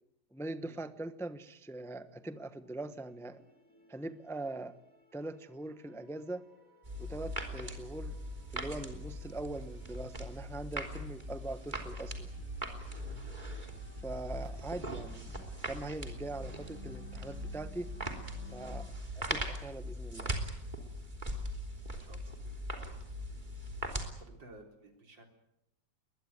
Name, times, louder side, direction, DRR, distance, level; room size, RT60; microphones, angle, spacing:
voice 1, 0.3-3.4 3.9-4.8 5.1-6.4 7.0-8.2 8.5-12.3 14.0-17.9 18.5-20.3, right 2 dB, ahead, 11 dB, 0.8 m, -42 dB
sound 1, 2.0-18.9, left 5 dB, 45° left, 5.7 m, -60 dB
sound 2, 6.8-24.1, equal, 25° right, 3.4 m, -40 dB
sound 3, 14.3-19.7, right 8 dB, 60° right, 2.4 m, -56 dB
voice 2, 22.0-22.4 22.8-23.2 24.0-25.3, right 1 dB, 90° right, 4 dB, 4.5 m, -56 dB
21.5 x 21.5 x 9.5 m, 0.83 s
omnidirectional pair, 2.0 m